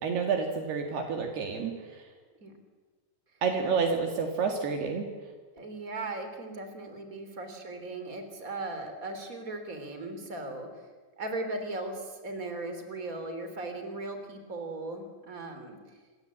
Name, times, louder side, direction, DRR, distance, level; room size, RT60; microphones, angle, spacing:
voice 1, 0.0-2.0 3.4-5.1, right 5 dB, 70° right, 3 dB, 4.0 m, -29 dB
voice 2, 5.6-10.8 11.2-15.8, right 2 dB, 20° right, 7 dB, 3.7 m, -38 dB
28.0 x 24.5 x 8.7 m, 1.4 s
omnidirectional pair, 5.0 m